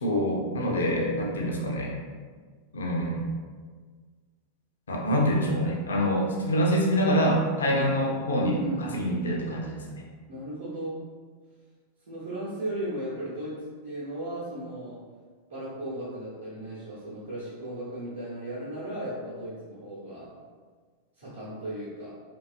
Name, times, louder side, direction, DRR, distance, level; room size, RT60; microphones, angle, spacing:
voice 1, 0.0-2.0 2.7-3.2 4.9-8.6 8.9-10.0, equal, 70° left, -1 dB, 0.3 m, -25 dB
voice 2, 8.4-9.5 10.3-11.0 12.1-15.0 15.5-20.3 21.2-22.1, right 1 dB, 65° right, -8 dB, 0.7 m, -36 dB
2.5 x 2.2 x 2.4 m, 1.5 s
figure-of-eight pair, 90°, 0 cm